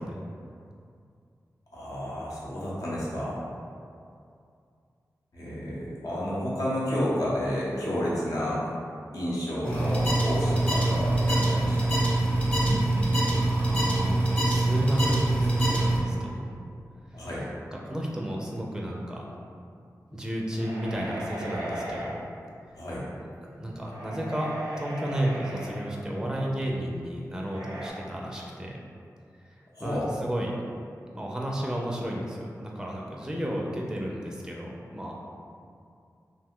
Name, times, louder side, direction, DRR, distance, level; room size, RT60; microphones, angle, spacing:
voice 1, 1.7-3.4 5.3-8.6 9.1-11.8 17.1-17.5 22.7-23.0 29.7-30.1, equal, 65° left, -8 dB, 0.9 m, -30 dB
sound 1, 9.6-16.0, right 1 dB, 20° left, 0.9 m, -24 dB
voice 2, 13.3-16.6 17.1-17.3 17.7-19.2 20.1-22.1 23.2-23.3 23.6-28.8 29.4-30.6 31.1-35.1, right 1 dB, 10° right, -2 dB, 0.4 m, -32 dB
sound 2, 20.5-22.2 23.7-25.9 27.5-27.9, right 1 dB, 90° right, 0.5 m, -37 dB
2.7 x 2.1 x 3.6 m, 2.4 s
cardioid pair, 50°, 6 cm